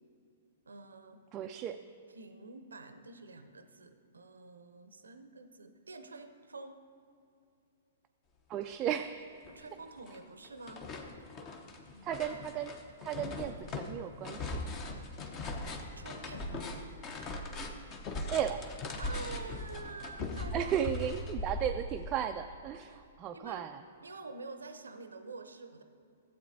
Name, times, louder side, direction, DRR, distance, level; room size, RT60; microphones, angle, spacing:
voice 1, 0.6-1.3 2.1-6.8 9.5-10.9 11.5-11.6 11.9-12.5 16.0-16.7 19.0-20.7 21.0-21.1 23.3-23.7 24.0-25.8, right 3 dB, 75° right, 8 dB, 0.6 m, -48 dB
voice 2, 1.3-1.8 8.5-9.3 12.0-12.7 13.0-14.8 18.3-18.6 20.5-23.8, right 9 dB, 25° right, 6 dB, 0.3 m, -35 dB
sound 1, 9.0-9.1 9.4-10.2 10.4-22.1, left 2 dB, 30° left, 0.9 m, -40 dB
15.0 x 7.9 x 2.7 m, 2.6 s
figure-of-eight pair, 115°, 0 cm